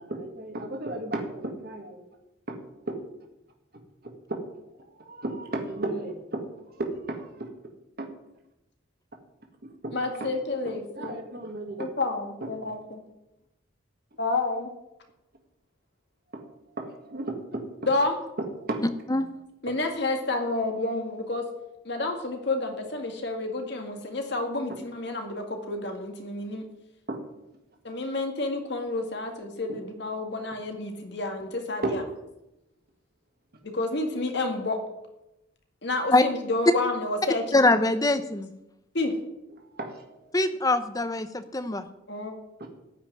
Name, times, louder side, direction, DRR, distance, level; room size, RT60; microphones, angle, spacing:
voice 1, 0.0-2.0 2.5-2.6 2.9-3.0 4.0-4.4 4.8-7.5 8.0-8.1 9.6-9.9 10.2-10.3 10.9-11.8 12.4-12.5 16.3-17.6 18.4-18.8 22.0-22.1 27.1-27.2 29.7-29.8 31.8-32.0 39.6-40.3 42.6-42.7, right 2 dB, 50° right, 3 dB, 1.8 m, -34 dB
voice 2, 9.9-11.2 11.8-13.0 14.2-14.7 17.8-18.2 19.6-21.4 21.8-26.7 27.8-32.0 33.6-34.8 35.8-37.6 38.9-39.1 42.1-42.4, left 2 dB, 60° left, 4 dB, 2.1 m, -29 dB
voice 3, 37.5-38.5 40.3-41.8, left 2 dB, 20° left, 11 dB, 0.7 m, -23 dB
14.0 x 5.8 x 9.8 m, 0.92 s
head